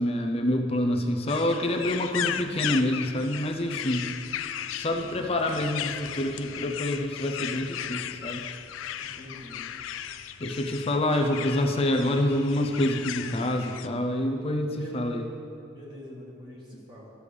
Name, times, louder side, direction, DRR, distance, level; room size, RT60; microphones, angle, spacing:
voice 1, 0.0-4.1 4.8-8.5 10.4-15.3, left 1 dB, 30° left, 3 dB, 0.6 m, -27 dB
sound 1, 1.3-13.9, left 10 dB, 85° left, 0.3 m, -36 dB
voice 2, 9.0-9.6 14.8-15.0 15.7-17.1, left 1 dB, 25° right, -4 dB, 1.6 m, -45 dB
12.5 x 6.8 x 3.4 m, 2.6 s
head